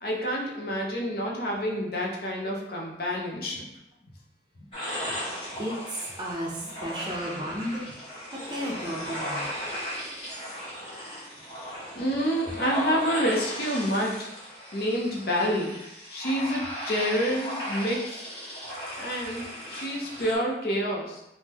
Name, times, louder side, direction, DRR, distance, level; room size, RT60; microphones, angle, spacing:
voice 1, 0.0-3.7 11.9-14.3 14.7-15.8 16.1-18.3 19.0-21.2, equal, 55° left, -2 dB, 0.6 m, -28 dB
sound 1, 4.7-20.4, equal, 30° left, 1.0 m, -36 dB
voice 2, 5.6-7.9 8.5-9.5 18.6-19.4 20.1-20.2, equal, 25° right, -3 dB, 0.5 m, -34 dB
3.6 x 2.1 x 2.9 m, 0.90 s
head